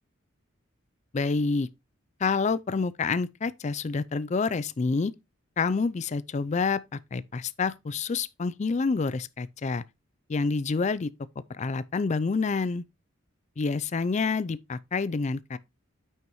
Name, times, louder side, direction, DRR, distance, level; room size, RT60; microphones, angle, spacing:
voice 1, 1.1-1.7 2.2-5.1 5.6-9.8 10.3-11.1 11.6-12.8 13.6-15.6, left 4 dB, 35° left, 0.4 m, -28 dB
9.2 x 5.9 x 3.0 m
head